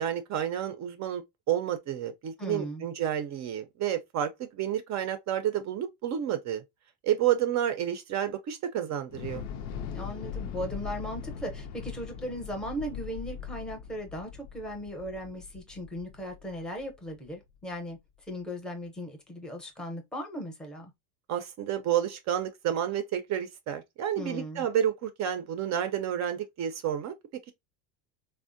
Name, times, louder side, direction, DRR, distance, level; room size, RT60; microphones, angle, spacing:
voice 1, 0.0-6.6 7.0-9.4 21.3-27.1, right 10 dB, 40° right, 0.5 m, -30 dB
voice 2, 2.4-2.9 9.9-18.0 18.3-20.9 24.2-24.7, equal, ahead, 0.6 m, -37 dB
Thunder / Explosion, 9.1-17.3, left 7 dB, 80° left, 0.6 m, -40 dB
3.4 x 2.1 x 2.5 m
supercardioid pair, 120°, 44 cm